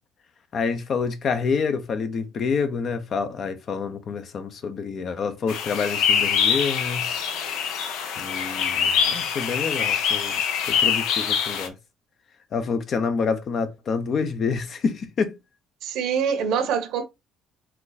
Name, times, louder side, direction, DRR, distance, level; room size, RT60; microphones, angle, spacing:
voice 1, 0.5-7.1 8.2-10.4 10.7-11.7 12.5-15.3, left 5 dB, 50° left, 0.8 m, -27 dB
sound 1, 5.5-11.7, left 7 dB, 80° left, 0.8 m, -24 dB
voice 2, 15.8-17.0, right 7 dB, 75° right, 1.1 m, -24 dB
4.5 x 2.4 x 4.0 m
cardioid pair, 110°, 0 cm